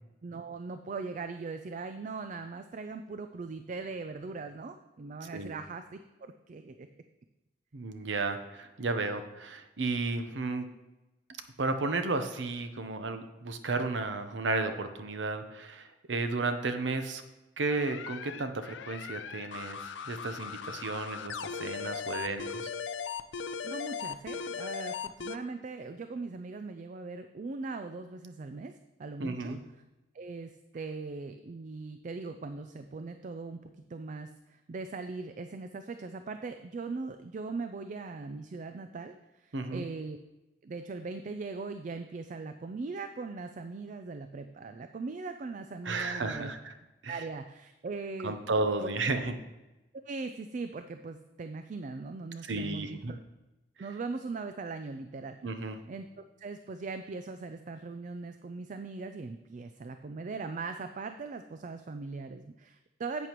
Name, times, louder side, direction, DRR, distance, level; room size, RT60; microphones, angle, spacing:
voice 1, 0.2-6.9 23.6-28.7 29.0-29.6 30.1-40.2 40.6-46.5 47.1-48.4 48.8-49.1 50.0-53.2 53.8-63.3, right 4 dB, 45° right, 8 dB, 0.4 m, -40 dB
voice 2, 7.7-10.7 11.6-17.2 17.6-19.8 20.1-22.7 29.2-29.6 39.5-39.8 45.8-46.7 47.0-47.1 48.2-49.3 52.5-53.1 55.4-55.8, right 3 dB, 85° right, 8 dB, 0.8 m, -33 dB
sound 1, 17.7-25.4, left 6 dB, 85° left, 0.4 m, -38 dB
10.5 x 8.3 x 3.0 m, 1.0 s
head